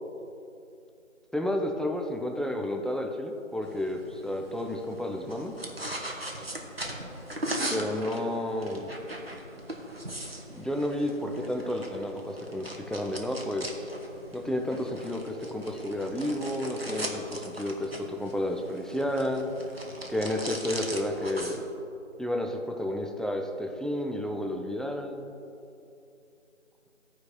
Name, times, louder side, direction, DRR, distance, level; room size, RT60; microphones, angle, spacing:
voice 1, 1.3-5.5 7.7-8.9 10.5-13.9 14.3-19.5 20.1-21.6 22.2-25.3, left 1 dB, ahead, 2 dB, 0.4 m, -31 dB
sound 1, 3.6-21.7, right 1 dB, 50° right, 0.9 m, -39 dB
13.0 x 4.7 x 4.4 m, 2.7 s
figure-of-eight pair, 180°, 40 cm